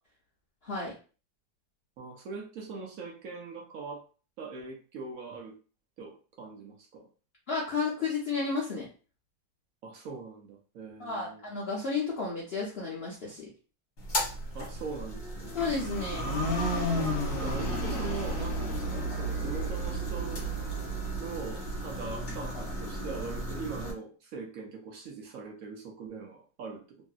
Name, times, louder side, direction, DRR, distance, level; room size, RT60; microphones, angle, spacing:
voice 1, 2.0-4.0 4.4-5.6 6.0-7.1 9.8-11.4 14.5-15.5 17.4-20.4 21.2-26.8, right 4 dB, 70° right, 0 dB, 0.8 m, -41 dB
voice 2, 7.5-8.9 11.0-13.5 15.5-16.4, left 4 dB, 75° left, -6 dB, 0.5 m, -32 dB
sound 1, 14.0-23.9, equal, 45° left, 1.2 m, -32 dB
3.0 x 2.7 x 2.3 m, 0.36 s
omnidirectional pair, 2.0 m